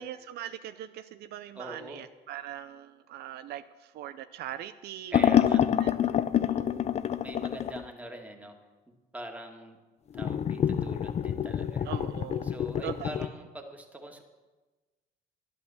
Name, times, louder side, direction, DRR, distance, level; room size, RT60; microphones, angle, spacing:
voice 1, 0.0-5.4 5.8-6.9 11.9-12.6 12.8-13.2, right 11 dB, 70° right, 11 dB, 0.6 m, -41 dB
voice 2, 1.6-2.0 5.1-5.6 7.2-8.6 9.1-9.8 10.1-11.9 12.4-14.2, right 1 dB, 10° right, 2 dB, 1.9 m, -43 dB
sound 1, 5.1-7.8 10.1-13.3, left 9 dB, 40° left, 0.6 m, -27 dB
11.5 x 10.5 x 7.0 m, 1.2 s
cardioid pair, 110°, 17 cm